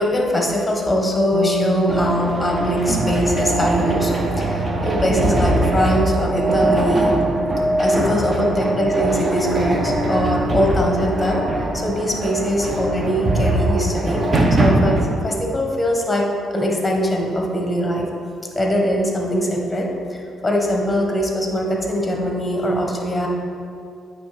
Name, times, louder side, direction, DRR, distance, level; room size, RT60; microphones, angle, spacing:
voice 1, 0.0-7.2 7.8-11.4 11.7-14.2 14.6-16.3 16.5-18.1 18.5-23.3, equal, 15° left, 0 dB, 1.2 m, -21 dB
sound 1, 1.3-11.1, right 5 dB, 80° right, 0.5 m, -31 dB
sound 2, 1.9-15.1, right 2 dB, 35° right, 0.8 m, -21 dB
8.6 x 3.3 x 4.9 m, 2.4 s
cardioid pair, 90°, 0 cm